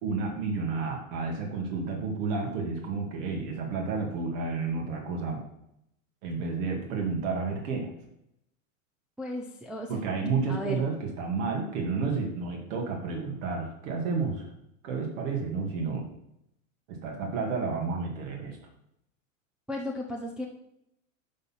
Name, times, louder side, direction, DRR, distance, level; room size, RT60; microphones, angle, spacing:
voice 1, 0.0-5.4 6.2-7.9 9.9-14.5 14.8-16.1 16.9-18.6, right 4 dB, 60° right, 1 dB, 2.5 m, -31 dB
voice 2, 9.2-9.9 10.5-10.8 19.7-20.5, left 1 dB, ahead, -1 dB, 0.4 m, -34 dB
11.5 x 4.1 x 6.0 m, 0.80 s
supercardioid pair, 135°, 41 cm